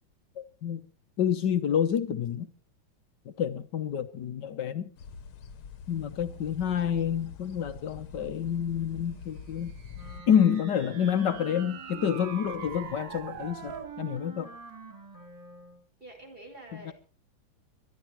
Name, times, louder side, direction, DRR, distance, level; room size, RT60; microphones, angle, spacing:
voice 1, 0.3-0.8 1.2-2.5 3.2-4.9 5.9-9.7 10.3-14.5 16.7-16.9, left 8 dB, 60° left, 1.5 m, -28 dB
sound 1, 5.0-10.2, left 5 dB, 85° left, 2.0 m, -45 dB
sound 2, 9.6-14.0, right 8 dB, 70° right, 1.9 m, -44 dB
Wind instrument woodwind instrument, 9.9-15.8, right 3 dB, 10° right, 4.9 m, -46 dB
voice 2, 16.0-16.9, right 1 dB, 25° right, 5.3 m, -47 dB
23.5 x 11.5 x 4.6 m
omnidirectional pair, 2.2 m